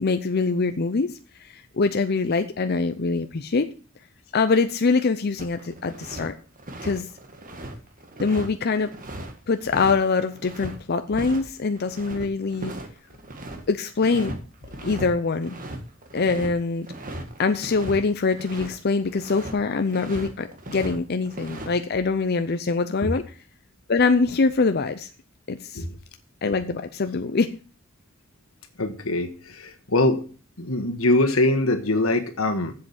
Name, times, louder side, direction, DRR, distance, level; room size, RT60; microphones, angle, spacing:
voice 1, 0.0-3.7 4.3-6.3 6.8-7.1 8.2-8.9 9.5-12.7 13.7-14.3 14.8-15.6 16.1-16.9 17.4-23.2 23.9-25.1 25.5-25.8 26.4-27.5, left 4 dB, 50° left, 8 dB, 0.6 m, -24 dB
sound 1, 5.4-6.3 6.6-10.8 11.1-11.4 11.7-13.6 14.0-14.4 14.6-15.1 15.4-18.8 19.1-19.5 19.9-21.0 21.2-21.7, right 1 dB, 40° right, 1.9 m, -37 dB
voice 2, 28.8-30.2 30.6-32.7, left 2 dB, 85° left, 6 dB, 1.6 m, -23 dB
7.7 x 7.7 x 7.2 m, 0.37 s
head